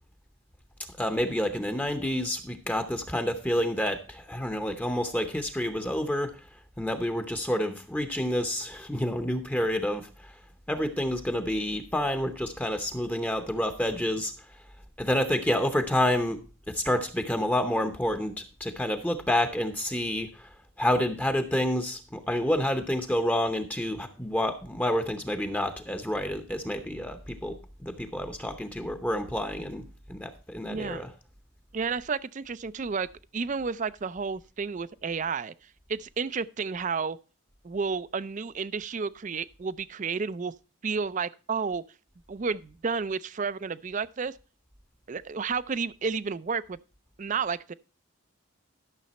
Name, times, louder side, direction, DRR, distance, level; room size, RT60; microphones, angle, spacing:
voice 1, 1.0-6.3 6.8-10.3 10.7-14.3 15.0-16.4 16.7-20.5 20.8-31.1, left 1 dB, 5° left, 0.7 m, -29 dB
voice 2, 30.6-31.0 31.7-33.1 33.3-35.5 35.9-37.2 37.6-40.5 40.8-41.8 42.3-44.3 45.1-46.8 47.2-47.7, right 5 dB, 35° right, 0.4 m, -31 dB
12.5 x 6.8 x 4.1 m
head